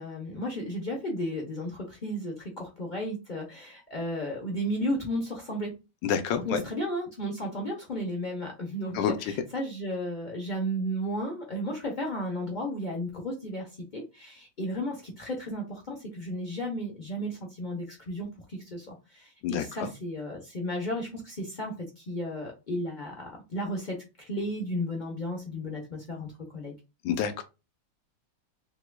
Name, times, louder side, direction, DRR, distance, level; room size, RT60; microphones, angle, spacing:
voice 1, 0.0-5.7 6.4-26.7, equal, 50° left, -1 dB, 0.5 m, -34 dB
voice 2, 6.0-6.6 8.9-9.3 19.4-19.9 27.0-27.4, left 8 dB, 75° left, 9 dB, 1.2 m, -28 dB
5.8 x 2.3 x 2.2 m, 0.27 s
omnidirectional pair, 2.1 m